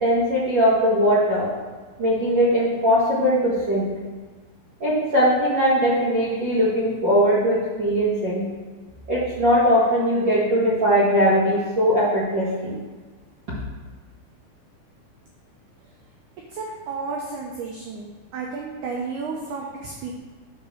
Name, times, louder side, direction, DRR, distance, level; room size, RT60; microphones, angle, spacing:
voice 1, 0.0-1.5 2.0-3.9 4.8-8.5 9.1-12.8, equal, 50° right, -10 dB, 1.4 m, -20 dB
voice 2, 16.5-20.1, right 4 dB, 80° right, -1 dB, 1.8 m, -32 dB
9.9 x 3.9 x 6.3 m, 1.3 s
omnidirectional pair, 4.5 m